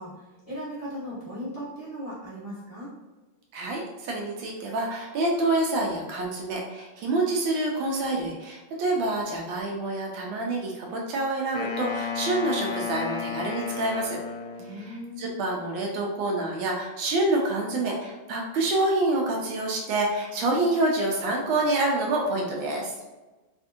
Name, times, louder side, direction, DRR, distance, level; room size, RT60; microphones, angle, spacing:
voice 1, 0.0-2.9 14.6-15.5, equal, 20° left, -11 dB, 1.3 m, -38 dB
voice 2, 3.5-14.2 14.7-22.9, right 2 dB, 80° right, -1 dB, 1.4 m, -27 dB
Wind instrument woodwind instrument, 11.5-15.0, left 6 dB, 90° left, 1.4 m, -33 dB
3.5 x 2.5 x 2.5 m, 1.2 s
omnidirectional pair, 2.2 m